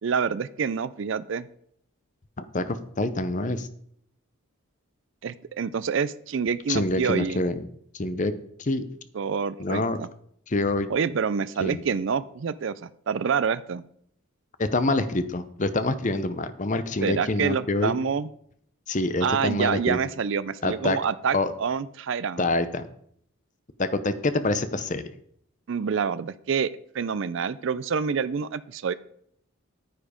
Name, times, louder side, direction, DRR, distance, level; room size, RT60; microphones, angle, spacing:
voice 1, 0.0-1.5 5.2-7.4 9.1-10.1 10.9-13.8 17.0-18.3 19.2-22.4 25.7-26.7 26.9-28.9, right 6 dB, 55° right, 15 dB, 0.4 m, -27 dB
voice 2, 2.5-3.7 6.7-7.6 7.9-8.3 8.6-8.8 9.6-10.0 10.5-10.9 11.6-11.8 14.6-17.9 18.9-20.0 20.6-21.0 21.3-21.5 22.4-22.9 23.8-25.0, left 2 dB, 35° left, 12 dB, 0.7 m, -26 dB
9.6 x 9.4 x 5.1 m, 0.68 s
head